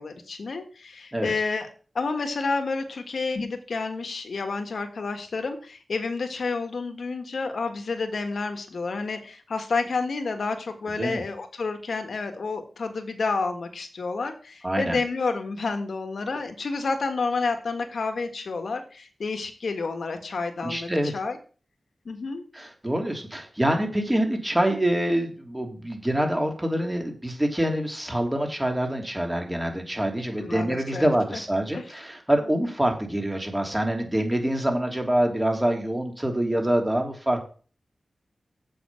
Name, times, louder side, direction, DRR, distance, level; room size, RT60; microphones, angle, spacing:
voice 1, 0.0-1.7 2.0-21.4 22.1-22.4 30.4-31.1 31.7-32.0, left 4 dB, 75° left, 7 dB, 1.6 m, -30 dB
voice 2, 14.6-15.0 20.6-21.1 22.5-37.5, right 1 dB, 15° right, 3 dB, 3.1 m, -25 dB
7.7 x 5.9 x 7.5 m, 0.39 s
cardioid pair, 55°, 0 cm